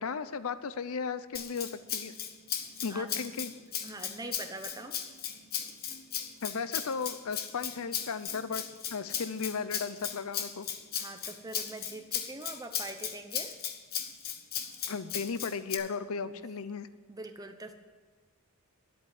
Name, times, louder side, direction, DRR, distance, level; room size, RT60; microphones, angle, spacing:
voice 1, 0.0-2.1 2.8-3.5 6.4-8.6 8.9-10.7 14.9-16.9, left 5 dB, 70° left, 13 dB, 0.6 m, -35 dB
Rattle (instrument), 1.3-15.7, left 9 dB, 45° left, 1.0 m, -36 dB
voice 2, 3.8-5.0 11.0-13.5 16.3-16.4 17.1-17.7, right 2 dB, 15° right, 7 dB, 0.8 m, -43 dB
11.0 x 8.1 x 9.5 m, 1.4 s
head